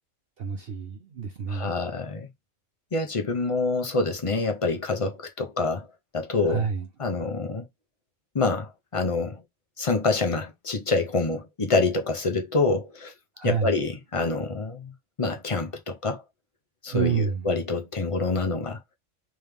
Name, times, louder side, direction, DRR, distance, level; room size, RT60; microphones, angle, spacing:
voice 1, 0.4-1.7 6.4-6.9 13.4-13.7 16.9-17.4, right 6 dB, 55° right, 0.8 m, -28 dB
voice 2, 1.5-2.3 2.9-5.9 6.1-6.7 7.0-7.7 8.3-9.4 9.8-13.1 13.4-16.2 16.8-18.8, left 3 dB, 30° left, 0.6 m, -26 dB
3.3 x 3.3 x 3.5 m
omnidirectional pair, 1.4 m